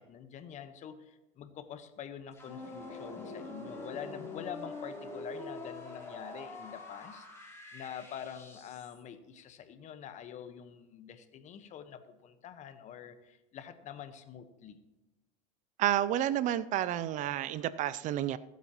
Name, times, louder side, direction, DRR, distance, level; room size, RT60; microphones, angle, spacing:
voice 1, 0.0-14.8, left 8 dB, 45° left, 10 dB, 1.2 m, -46 dB
sound 1, 2.3-9.0, left 2 dB, 15° left, 3.8 m, -45 dB
voice 2, 15.8-18.4, right 12 dB, 45° right, 17 dB, 0.5 m, -30 dB
24.0 x 8.1 x 3.0 m, 1.0 s
hypercardioid pair, 95°, 17 cm